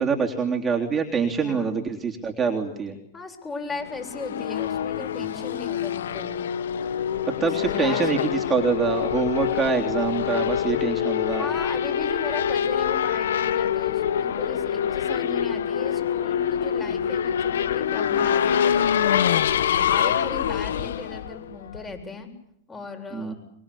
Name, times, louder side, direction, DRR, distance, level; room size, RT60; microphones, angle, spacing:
voice 1, 0.0-3.0 7.3-11.5 23.1-23.3, right 5 dB, 20° right, 1 dB, 3.4 m, -25 dB
voice 2, 1.4-1.7 3.1-6.5 7.4-8.4 11.3-18.9 19.7-22.3 22.7-23.4, left 3 dB, 15° left, 6 dB, 7.9 m, -37 dB
Race car auto racing / Accelerating revving vroom, 3.8-22.0, left 9 dB, 75° left, 1.4 m, -25 dB
24.0 x 23.0 x 8.6 m, 0.76 s
hypercardioid pair, 120°, 0 cm